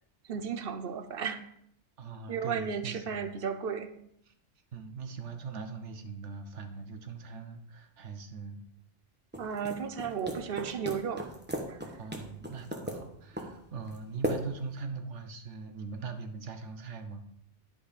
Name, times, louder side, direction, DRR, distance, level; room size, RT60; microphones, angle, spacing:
voice 1, 0.2-1.5 2.3-3.9 9.4-11.3 11.7-12.0, right 6 dB, 55° right, 9 dB, 0.9 m, -34 dB
voice 2, 2.0-2.9 4.7-8.6 12.0-17.2, right 5 dB, 75° right, 7 dB, 1.3 m, -41 dB
sound 1, 9.3-14.8, right 1 dB, 10° right, 1.1 m, -38 dB
11.0 x 5.4 x 5.0 m, 0.73 s
omnidirectional pair, 1.2 m